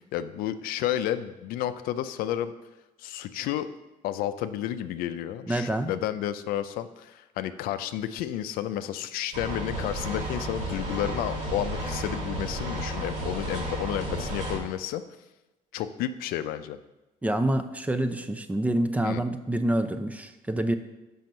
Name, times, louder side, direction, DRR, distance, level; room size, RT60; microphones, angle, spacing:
voice 1, 0.0-2.5 3.0-3.7 4.0-15.0 15.7-16.8 19.0-19.2, left 11 dB, 80° left, 11 dB, 0.5 m, -31 dB
voice 2, 5.5-5.9 17.2-20.7, right 1 dB, 10° right, 9 dB, 0.5 m, -27 dB
sound 1, 9.3-14.6, right 1 dB, 55° right, 2.2 m, -32 dB
5.9 x 5.5 x 5.3 m, 1.0 s
cardioid pair, 105°, 15 cm